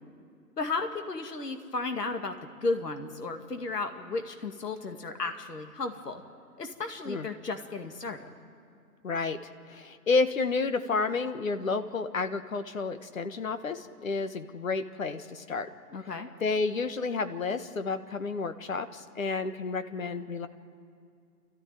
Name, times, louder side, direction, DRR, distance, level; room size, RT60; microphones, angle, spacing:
voice 1, 0.6-2.3 2.6-6.2 6.6-8.3 15.9-16.3, left 3 dB, 75° left, 6 dB, 2.2 m, -34 dB
voice 2, 9.0-15.7 16.4-20.5, left 4 dB, 55° left, 9 dB, 1.5 m, -30 dB
29.5 x 13.5 x 9.2 m, 2.3 s
figure-of-eight pair, 160°, 48 cm